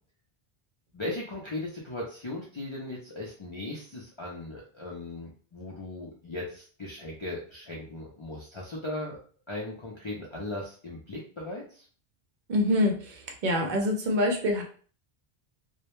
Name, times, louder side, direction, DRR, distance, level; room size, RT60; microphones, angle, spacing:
voice 1, 0.9-9.2 9.5-11.9, left 2 dB, 45° left, -4 dB, 0.4 m, -38 dB
voice 2, 12.5-14.6, left 1 dB, 55° right, 2 dB, 0.6 m, -26 dB
2.1 x 2.1 x 2.9 m, 0.43 s
omnidirectional pair, 1.1 m